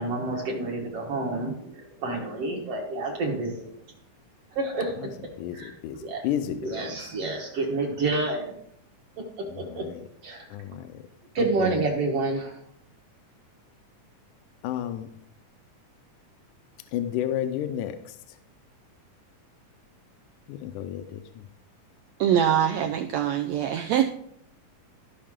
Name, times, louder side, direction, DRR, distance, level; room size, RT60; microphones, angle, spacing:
voice 1, 0.0-3.8 4.5-5.2 5.5-5.8 6.0-6.3 6.6-8.5 9.2-9.9 10.2-10.5 11.3-12.6, right 3 dB, 55° right, -1 dB, 1.9 m, -29 dB
voice 2, 5.4-7.1 9.5-10.0 10.5-11.0 11.4-11.8 14.6-15.1 16.9-18.2 20.5-21.4, left 10 dB, 80° left, 9 dB, 2.1 m, -32 dB
voice 3, 22.2-24.0, right 9 dB, 85° right, 5 dB, 1.5 m, -23 dB
14.0 x 5.5 x 3.6 m, 0.69 s
omnidirectional pair, 3.7 m